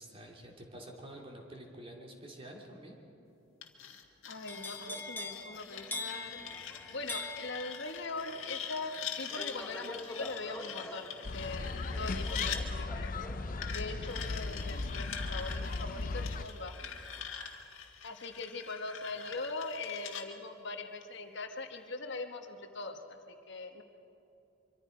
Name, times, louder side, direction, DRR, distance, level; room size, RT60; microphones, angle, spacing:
voice 1, 0.0-3.0, right 1 dB, 30° right, 0 dB, 2.7 m, -48 dB
sound 1, 3.6-12.6 13.6-20.2, left 8 dB, 80° left, 1.7 m, -44 dB
voice 2, 4.3-6.4 6.9-13.2 13.7-16.8 18.0-23.8, left 3 dB, 60° left, 5 dB, 1.4 m, -41 dB
sound 2, 4.5-16.4 16.8-17.2, left 2 dB, 10° left, 1.1 m, -45 dB
sound 3, 11.2-16.4, left 3 dB, 45° left, 0.6 m, -37 dB
24.5 x 24.0 x 5.2 m, 2.8 s
head